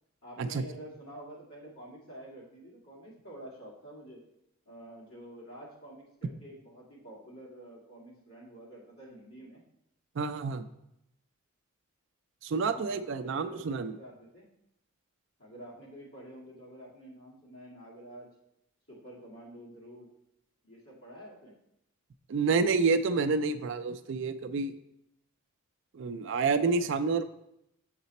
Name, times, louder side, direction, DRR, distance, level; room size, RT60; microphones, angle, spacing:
voice 1, 0.2-4.3 4.7-9.6 12.6-14.5 15.4-18.3 18.9-20.1 20.6-21.5, right 1 dB, 75° left, -4 dB, 2.1 m, -48 dB
voice 2, 10.2-10.6 12.4-14.0 22.3-24.7 25.9-27.3, right 4 dB, 55° right, 11 dB, 0.3 m, -28 dB
6.6 x 4.0 x 4.1 m, 0.81 s
head